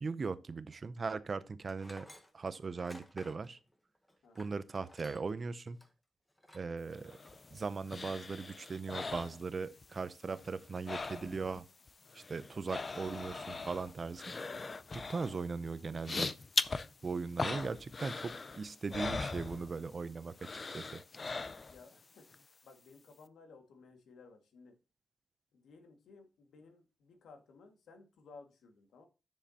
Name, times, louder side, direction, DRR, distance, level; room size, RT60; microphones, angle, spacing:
voice 1, 0.0-2.1 2.3-3.6 4.4-5.8 6.5-7.2 7.5-11.7 12.1-14.2 14.9-16.3 17.0-20.5 20.7-21.0, right 4 dB, 30° right, 0.5 m, -39 dB
Tools, 1.7-5.4 5.8-5.9 6.4-6.7 7.1-7.8, left 1 dB, 10° left, 1.0 m, -56 dB
sound 1, 6.9-10.0 10.3-11.6 11.9-20.0 20.4-21.9 22.3-22.4, left 4 dB, 30° left, 0.4 m, -40 dB
voice 2, 21.7-22.3 22.6-24.8 25.5-29.1, left 4 dB, 85° left, 1.8 m, -57 dB
10.5 x 7.4 x 2.8 m
wide cardioid pair, 160°, 0 cm